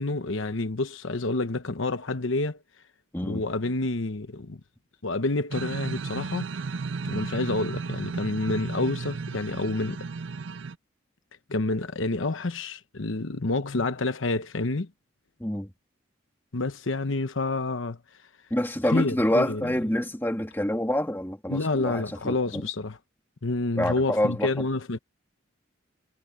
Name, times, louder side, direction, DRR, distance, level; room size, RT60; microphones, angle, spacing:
voice 1, 0.0-2.6 3.3-4.6 5.0-6.5 7.0-10.1 11.5-14.9 16.5-18.0 18.8-19.6 21.5-23.0 23.4-25.0, left 2 dB, 75° left, 1.0 m, -28 dB
sound 1, 5.5-10.7, right 4 dB, 65° right, 0.5 m, -34 dB
voice 2, 15.4-15.7 18.5-22.6 23.8-24.5, left 1 dB, 10° left, 2.1 m, -27 dB
head